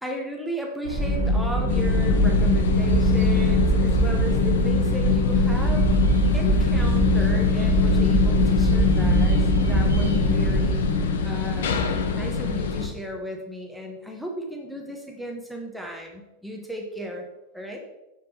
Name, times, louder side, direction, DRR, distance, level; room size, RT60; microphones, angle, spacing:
voice 1, 0.0-5.9 6.3-10.9 11.2-17.2 17.5-17.8, right 1 dB, ahead, 0 dB, 0.8 m, -34 dB
sound 1, 0.8-11.1, right 2 dB, 85° right, 1.1 m, -32 dB
sound 2, 1.0-10.7, right 2 dB, 25° right, 1.7 m, -23 dB
sound 3, 1.7-12.9, left 5 dB, 60° left, 0.6 m, -23 dB
5.9 x 5.5 x 3.3 m, 1.0 s
figure-of-eight pair, 90°, 0 cm